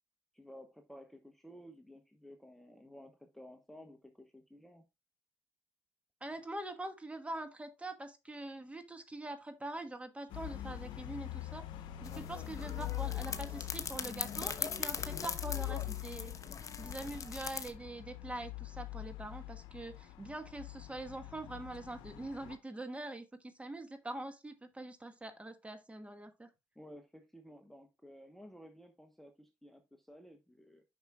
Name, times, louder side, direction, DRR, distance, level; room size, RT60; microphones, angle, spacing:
voice 1, 0.3-4.8 26.7-30.8, equal, 5° left, 1.0 m, -54 dB
voice 2, 6.2-11.6 12.0-16.3 16.8-26.5, right 1 dB, 15° right, 1.3 m, -44 dB
sound 1, 10.3-22.6, left 16 dB, 70° left, 0.8 m, -44 dB
sound 2, 12.0-17.7, left 6 dB, 40° left, 1.0 m, -41 dB
9.3 x 5.8 x 2.3 m
hypercardioid pair, 60°, 8 cm